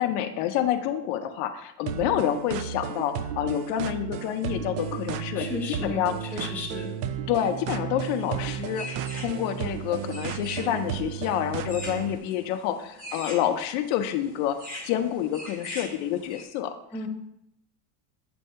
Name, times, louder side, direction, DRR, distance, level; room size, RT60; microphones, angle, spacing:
voice 1, 0.0-6.5 7.3-14.6 14.8-16.7, left 11 dB, 55° left, 7 dB, 0.6 m, -28 dB
sound 1, 1.9-12.2, right 9 dB, 80° right, 0.6 m, -33 dB
voice 2, 5.3-6.0 6.3-6.9 16.9-17.1, left 3 dB, 5° left, -6 dB, 0.5 m, -34 dB
sound 2, 8.2-16.4, left 1 dB, 20° right, 0.9 m, -43 dB
7.7 x 2.7 x 5.4 m, 0.78 s
cardioid pair, 170°, 46 cm